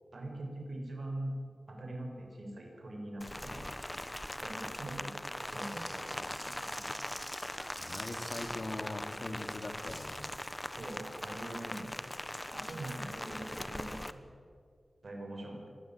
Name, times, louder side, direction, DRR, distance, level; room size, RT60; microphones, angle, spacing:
voice 1, 0.1-1.3 1.7-3.6 4.4-7.0 10.7-12.0 12.5-14.3 15.0-15.7, right 1 dB, 65° right, 1 dB, 6.4 m, -43 dB
Rain, 3.2-14.1, left 1 dB, 15° left, 1.1 m, -41 dB
sound 1, 5.4-8.5 9.7-10.1, equal, 5° right, 4.3 m, -48 dB
voice 2, 7.8-10.3, left 2 dB, 50° left, 5 dB, 2.8 m, -41 dB
23.5 x 18.5 x 9.2 m, 2.2 s
wide cardioid pair, 85°, 0 cm